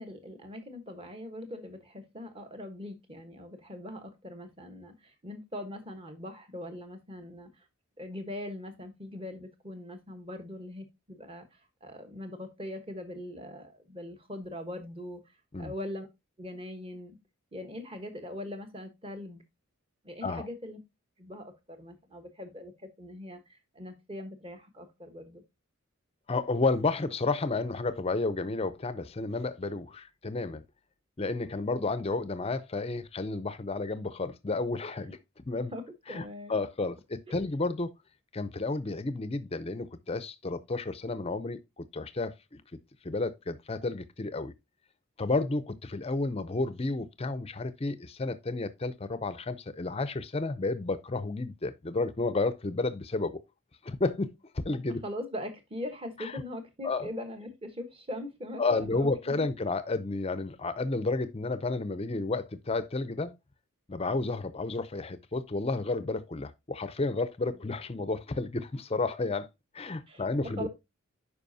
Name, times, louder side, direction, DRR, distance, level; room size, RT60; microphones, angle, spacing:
voice 1, 0.0-7.7 8.0-16.1 16.4-17.2 17.5-19.4 20.0-20.8 21.2-25.4 35.7-36.5 37.3-37.4 55.0-59.4 70.1-70.7, left 1 dB, 25° right, 1.1 m, -41 dB
voice 2, 26.3-30.6 31.2-35.2 35.5-35.7 36.1-36.2 36.5-37.9 38.3-42.6 43.0-44.5 45.2-53.4 53.8-54.3 54.6-55.0 56.2-56.3 56.8-57.1 58.6-63.3 63.9-69.5 69.7-70.7, left 3 dB, 25° left, 0.5 m, -31 dB
10.0 x 5.0 x 2.7 m
head